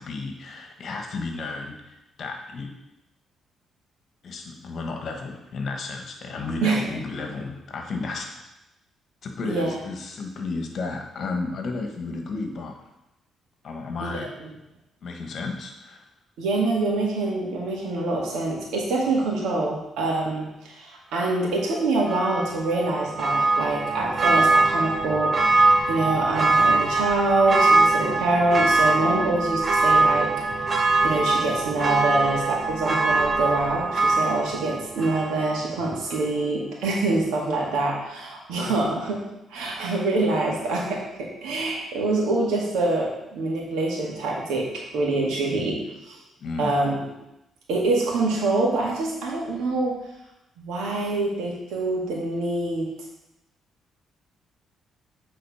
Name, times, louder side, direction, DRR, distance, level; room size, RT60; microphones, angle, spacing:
voice 1, 0.0-2.7 4.2-8.4 9.2-12.7 13.6-14.3 15.0-16.1 38.6-38.8 45.5-45.8 46.4-46.8, left 3 dB, 60° left, 3 dB, 1.2 m, -33 dB
voice 2, 9.4-9.7 14.0-14.5 16.4-30.7 31.0-39.2 39.5-44.7 44.9-45.8 46.1-46.2 46.6-47.1 47.7-50.0 50.6-52.9, right 2 dB, 90° right, -2 dB, 1.9 m, -25 dB
Church bell, 22.1-35.7 36.1-36.2, right 3 dB, 35° right, 0.8 m, -22 dB
8.3 x 3.8 x 4.8 m, 0.89 s
cardioid pair, 90°, 0 cm